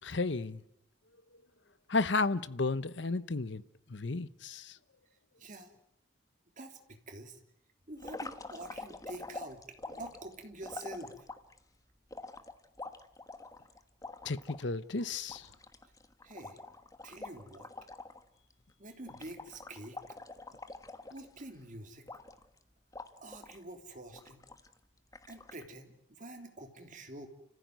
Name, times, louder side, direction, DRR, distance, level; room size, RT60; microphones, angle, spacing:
voice 1, 0.0-0.6 1.9-3.6 3.9-4.8 14.2-15.5, left 3 dB, 70° left, 1.0 m, -33 dB
voice 2, 5.4-5.7 6.6-7.4 7.9-11.1 15.0-15.1 15.8-15.9 16.2-16.6 17.0-17.7 18.8-20.2 21.1-22.0 23.2-24.4 25.3-27.3, right 1 dB, 45° right, 3.2 m, -47 dB
sound 1, 8.0-11.6 12.1-14.6 15.0-15.1 15.3-18.2 18.5-18.7 19.1-21.6 22.1-22.6 22.9-23.6 24.1-24.7 25.1-25.6, left 3 dB, 20° left, 1.4 m, -46 dB
29.5 x 15.5 x 9.3 m
head